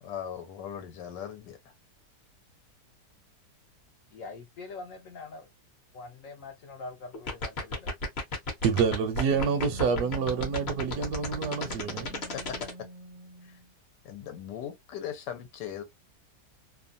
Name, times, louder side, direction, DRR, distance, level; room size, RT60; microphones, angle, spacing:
voice 1, 0.0-1.6 11.6-11.9 12.3-12.6 13.4-13.6 14.0-15.8, left 9 dB, 90° left, 1.3 m, -39 dB
voice 2, 4.1-5.5 5.9-7.9, left 3 dB, 65° left, 0.8 m, -43 dB
sound 1, 7.1-12.7, left 1 dB, 45° left, 1.0 m, -31 dB
voice 3, 8.6-12.2, right 6 dB, 70° right, 1.0 m, -28 dB
Wind instrument woodwind instrument, 9.3-13.7, right 1 dB, 50° right, 0.6 m, -46 dB
2.9 x 2.2 x 2.5 m
omnidirectional pair, 1.8 m